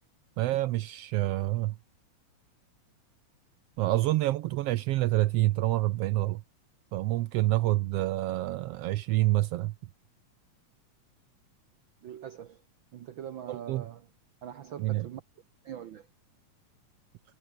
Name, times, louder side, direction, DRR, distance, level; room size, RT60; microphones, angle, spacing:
voice 1, 0.4-1.7 3.8-6.4 6.9-9.7 13.5-13.8 14.8-15.1, right 17 dB, 90° right, 1.3 m, -27 dB
voice 2, 12.0-12.6 12.9-14.1 14.4-15.2 15.6-16.1, right 9 dB, 75° right, 1.1 m, -42 dB
omnidirectional pair, 3.4 m